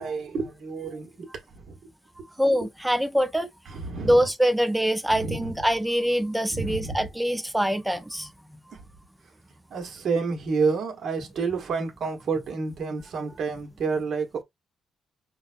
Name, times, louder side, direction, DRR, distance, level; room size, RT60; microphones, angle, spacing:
voice 1, 0.0-1.8 2.6-2.7 3.7-4.2 5.1-5.6 6.5-7.1 8.7-8.9 9.7-14.4, right 4 dB, 60° right, 1.2 m, -29 dB
voice 2, 2.4-3.5 4.0-8.3, equal, 5° right, 0.5 m, -24 dB
4.8 x 2.2 x 2.5 m
cardioid pair, 90°, 0 cm